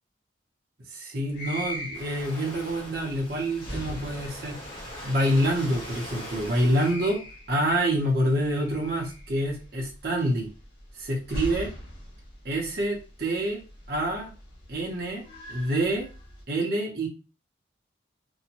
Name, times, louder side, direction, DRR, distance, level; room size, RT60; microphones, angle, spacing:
voice 1, 0.9-4.6 5.0-10.5 11.0-11.7 12.4-13.6 13.9-14.3 14.7-15.2 15.5-16.1 16.5-17.1, right 1 dB, 55° right, -2 dB, 0.8 m, -27 dB
sound 1, 1.3-16.4, equal, 50° left, 0.9 m, -42 dB
Waves surf, 1.9-6.9, left 1 dB, 30° left, 1.2 m, -41 dB
2.7 x 2.2 x 2.8 m, 0.32 s
head